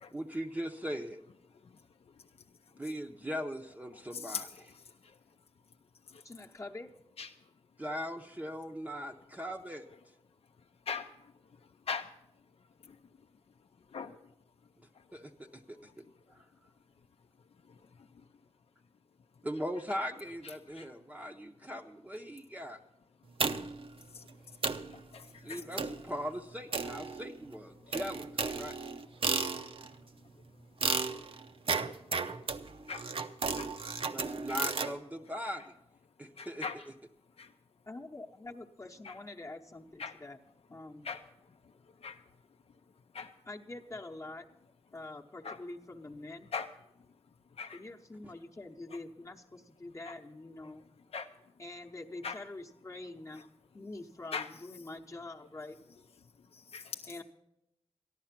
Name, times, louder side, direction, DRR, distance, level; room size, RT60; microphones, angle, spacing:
voice 1, 0.1-1.2 2.8-4.5 7.8-9.8 15.1-15.9 16.3-16.4 19.4-22.8 25.4-28.8 34.1-35.6 36.2-36.7, equal, 15° right, 2 dB, 0.7 m, -39 dB
voice 2, 4.1-4.4 6.1-6.2 7.2-7.3 10.9-11.1 11.9-12.0 12.9-13.0 13.9-14.2 20.7-20.9 24.1-24.2 24.9-25.6 32.9-33.0 33.6-33.7 34.2-34.3 36.4-36.8 37.4-37.5 39.0-39.1 40.0-40.2 41.0-41.2 42.0-42.2 43.1-43.3 45.4-45.6 46.5-46.7 47.6-47.8 51.1-51.3 52.2-52.4 54.3-54.5 56.5-57.0, left 5 dB, 65° left, 5 dB, 0.5 m, -39 dB
voice 3, 6.2-6.9 37.9-40.4 40.7-41.1 43.5-44.5 44.9-46.5 47.7-50.9 51.6-53.5 53.7-55.8 57.1-57.2, left 2 dB, 30° left, 1 dB, 0.9 m, -45 dB
sound 1, 23.4-23.9 24.3-24.4 24.6-24.9 25.8-26.1 26.7-27.4 27.9-29.9 30.8-34.9, right 4 dB, 55° right, 0.6 m, -34 dB
14.0 x 11.0 x 5.9 m, 0.85 s
wide cardioid pair, 105°, 11 cm